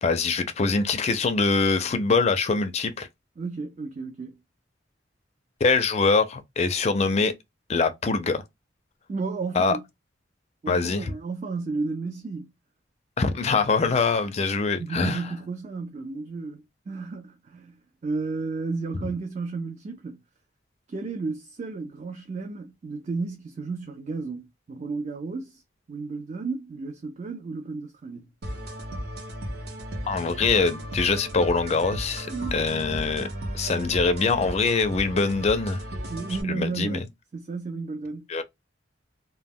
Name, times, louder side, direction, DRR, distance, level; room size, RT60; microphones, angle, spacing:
voice 1, 0.0-3.1 5.6-7.3 7.7-8.4 9.5-9.8 10.7-11.1 13.2-15.2 30.1-33.3 33.5-35.8 36.5-37.0 38.3-38.4, left 4 dB, 35° left, 0.4 m, -23 dB
voice 2, 3.4-4.4 9.1-9.8 10.6-12.5 14.8-20.2 20.9-25.6 25.9-28.3 32.3-32.7 36.1-37.0 37.3-38.3, right 4 dB, 40° right, 0.3 m, -33 dB
sound 1, 28.4-36.4, right 1 dB, 60° right, 0.7 m, -35 dB
2.1 x 2.1 x 3.4 m
head